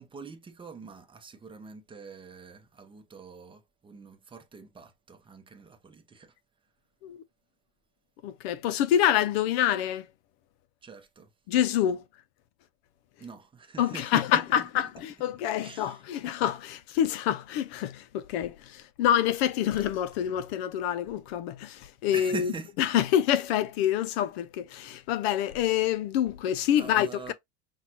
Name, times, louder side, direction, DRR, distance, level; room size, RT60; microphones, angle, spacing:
voice 1, 0.0-6.3 10.8-11.3 13.2-14.7 15.6-16.0 22.1-23.0 26.8-27.3, right 4 dB, 15° right, 0.7 m, -44 dB
voice 2, 8.2-10.1 11.5-12.0 13.8-22.5 22.8-27.3, left 10 dB, 65° left, 0.6 m, -27 dB
5.8 x 2.3 x 2.9 m
supercardioid pair, 125°, 34 cm